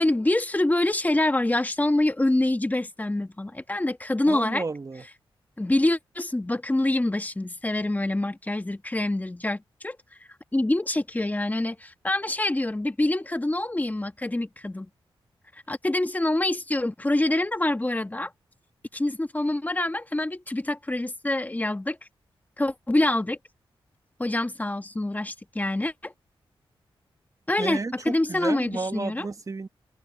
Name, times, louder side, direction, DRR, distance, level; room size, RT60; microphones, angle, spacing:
voice 1, 0.0-4.6 5.6-10.0 10.5-14.9 15.7-18.3 18.9-22.0 22.6-23.4 24.2-26.1 27.5-27.8 28.0-29.3, left 1 dB, 15° left, 1.4 m, -26 dB
voice 2, 4.3-5.0 27.6-29.7, right 3 dB, 35° right, 1.5 m, -32 dB
cardioid pair, 60°, 9 cm